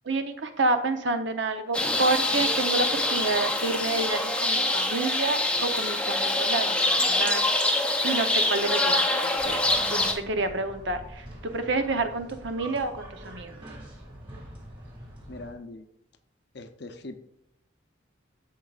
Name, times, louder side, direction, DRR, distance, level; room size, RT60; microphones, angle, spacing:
voice 1, 0.1-9.6 9.9-13.6, right 3 dB, 70° right, 8 dB, 0.8 m, -29 dB
sound 1, 1.7-10.1, left 2 dB, 5° left, 0.6 m, -25 dB
sound 2, 9.4-15.5, right 1 dB, 25° right, 2.2 m, -44 dB
voice 2, 15.3-15.9 16.5-17.2, left 2 dB, 60° left, 9 dB, 0.7 m, -41 dB
14.0 x 4.7 x 2.4 m, 0.80 s
head